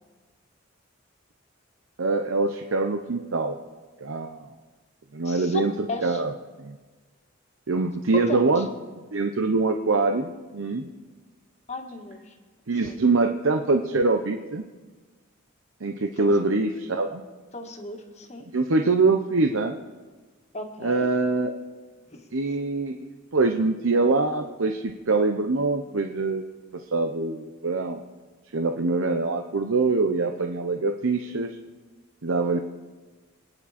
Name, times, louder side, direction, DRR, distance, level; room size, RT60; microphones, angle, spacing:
voice 1, 2.0-3.6 4.0-4.5 5.1-6.3 6.6-6.7 7.7-8.7 9.1-10.9 12.7-14.6 15.8-17.2 18.5-19.7 20.8-21.5 22.3-26.4 26.9-28.0 28.5-31.5 32.2-32.6, right 3 dB, 85° right, 5 dB, 0.9 m, -24 dB
voice 2, 5.2-5.6 5.9-6.2 8.3-8.6 11.7-12.3 12.8-13.0 16.2-16.3 17.5-18.4 20.5-21.1 22.1-22.3, left 2 dB, 35° left, 3 dB, 1.9 m, -35 dB
28.0 x 9.9 x 4.3 m, 1.4 s
head